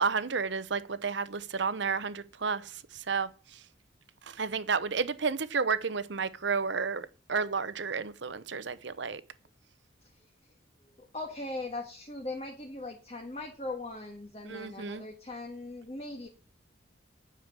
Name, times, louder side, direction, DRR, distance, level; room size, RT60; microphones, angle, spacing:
voice 1, 0.0-3.6 4.2-9.2 14.5-15.0, right 5 dB, 65° right, 0.8 m, -31 dB
voice 2, 11.0-16.3, left 2 dB, 30° left, 1.6 m, -40 dB
9.6 x 7.1 x 7.6 m
head